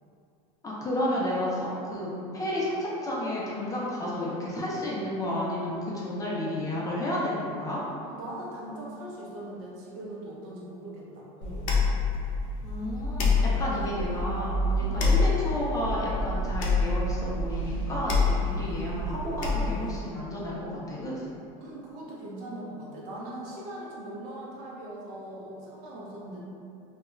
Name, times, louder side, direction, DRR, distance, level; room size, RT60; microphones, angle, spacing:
voice 1, 0.6-7.8 12.6-21.3, left 1 dB, 20° left, -6 dB, 0.5 m, -31 dB
voice 2, 8.0-11.7 14.8-15.0 21.6-26.4, right 1 dB, 55° right, -5 dB, 0.7 m, -40 dB
sound 1, 11.4-20.0, left 3 dB, 75° left, 0.5 m, -27 dB
2.3 x 2.2 x 3.0 m, 2.6 s
supercardioid pair, 130°, 17 cm